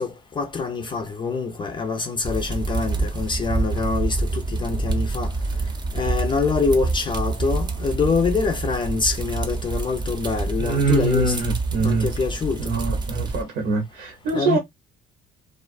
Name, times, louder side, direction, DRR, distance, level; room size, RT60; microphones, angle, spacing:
voice 1, 0.0-5.3 5.9-11.4 11.8-12.8 14.3-14.6, left 4 dB, 30° left, 0.5 m, -25 dB
sound 1, 2.2-13.4, right 3 dB, 25° right, 0.5 m, -27 dB
voice 2, 10.6-12.1 12.6-14.6, right 3 dB, 70° right, 0.9 m, -23 dB
2.3 x 2.2 x 2.4 m
cardioid pair, 110°, 17 cm